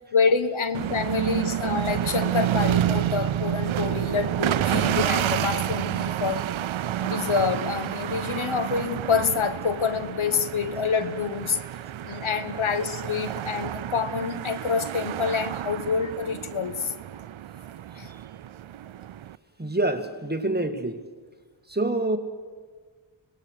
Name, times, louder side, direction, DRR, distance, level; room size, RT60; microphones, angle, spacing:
voice 1, 0.1-6.4 7.0-11.6 12.0-16.9 18.0-18.1, left 5 dB, 80° left, 1.2 m, -27 dB
sound 1, 0.7-19.4, right 11 dB, 80° right, 0.6 m, -29 dB
voice 2, 19.6-21.1 21.7-22.2, right 2 dB, 20° right, 1.8 m, -26 dB
25.0 x 19.5 x 6.6 m
cardioid pair, 45°, 47 cm